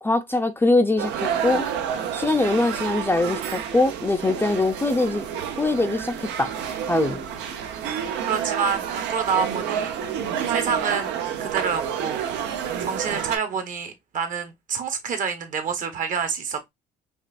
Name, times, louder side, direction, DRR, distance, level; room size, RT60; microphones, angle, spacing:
voice 1, 0.0-1.7 2.1-5.3 5.6-6.5 6.9-7.2, left 2 dB, 10° left, 0.6 m, -22 dB
sound 1, 1.0-13.4, right 8 dB, 80° right, 0.9 m, -29 dB
voice 2, 8.3-10.0 10.5-11.1 11.4-12.2 12.8-16.7, right 6 dB, 45° right, 1.1 m, -27 dB
5.3 x 2.5 x 2.5 m
cardioid pair, 120°, 18 cm